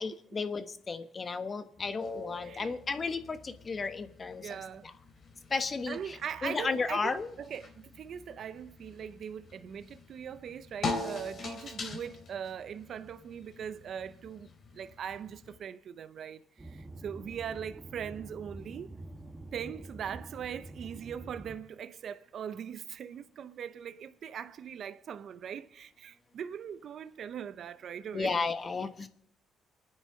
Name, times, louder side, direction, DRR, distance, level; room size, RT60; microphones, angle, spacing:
voice 1, 0.0-4.6 5.5-7.3 28.1-29.1, left 4 dB, 35° left, 1.3 m, -34 dB
sound 1, 2.0-15.6, left 3 dB, 55° left, 3.3 m, -43 dB
voice 2, 2.4-2.8 4.4-4.9 5.9-14.5 14.7-18.9 19.5-28.4, right 8 dB, 65° right, 0.6 m, -41 dB
sound 2, 16.6-21.6, right 2 dB, 25° right, 1.6 m, -46 dB
28.0 x 9.8 x 3.9 m
cardioid pair, 90°, 0 cm